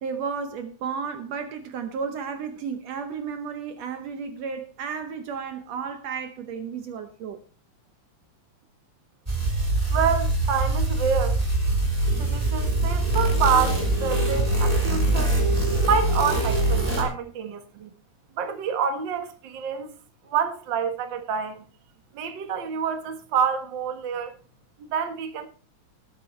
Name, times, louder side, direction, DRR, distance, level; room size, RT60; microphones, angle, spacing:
voice 1, 0.0-7.4, right 6 dB, 70° right, 2.0 m, -33 dB
sound 1, 9.3-17.0, right 2 dB, 10° right, 3.6 m, -23 dB
voice 2, 9.9-11.4 12.2-15.4 15.8-17.9 18.3-19.9 20.2-21.6 22.1-24.4 24.8-25.5, right 6 dB, 45° right, 1.8 m, -27 dB
19.5 x 9.8 x 3.2 m
omnidirectional pair, 3.3 m